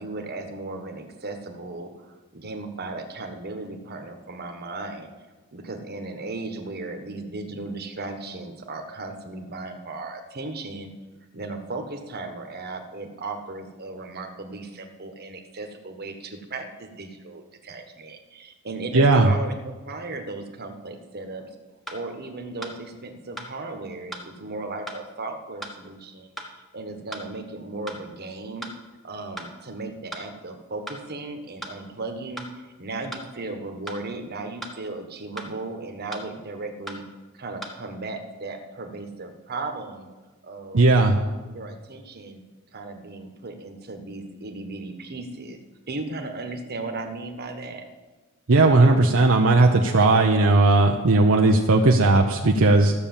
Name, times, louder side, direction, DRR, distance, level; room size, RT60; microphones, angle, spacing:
voice 1, 0.0-2.1 2.3-5.1 5.5-10.9 11.3-21.5 21.9-28.7 29.0-32.5 32.8-37.0 37.3-40.1 40.4-42.4 42.7-45.6 45.9-47.8, right 2 dB, 50° right, 5 dB, 1.4 m, -36 dB
voice 2, 18.9-19.3 40.7-41.2 48.5-52.9, right 2 dB, 65° right, 2 dB, 0.8 m, -17 dB
sound 1, 21.2-21.3 21.9-22.0 22.6-22.7 23.4-23.5 24.1-24.3 24.9-25.0 25.6-25.7 26.4-26.5 27.1-27.3 27.9-28.0 28.6-28.8 29.4-29.5 30.1-30.2 30.9-31.0 31.6-31.8 32.4-32.5 33.1-33.3 33.9-34.0 34.6-34.8 35.4-35.5 36.1-36.3 36.9-37.0 37.6-37.7, equal, ahead, 1.3 m, -37 dB
14.0 x 6.9 x 7.2 m, 1.2 s
head